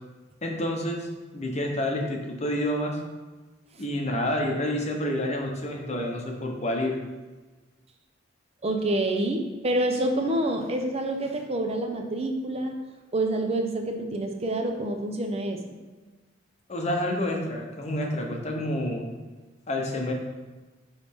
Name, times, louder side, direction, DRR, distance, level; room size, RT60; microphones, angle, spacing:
voice 1, 0.4-1.1 1.3-3.0 3.8-7.0 16.7-19.0 19.7-20.1, left 1 dB, 35° left, 1 dB, 0.9 m, -28 dB
voice 2, 8.6-12.7 13.1-15.6, right 1 dB, 35° right, 3 dB, 0.6 m, -27 dB
9.1 x 3.2 x 3.5 m, 1.2 s
head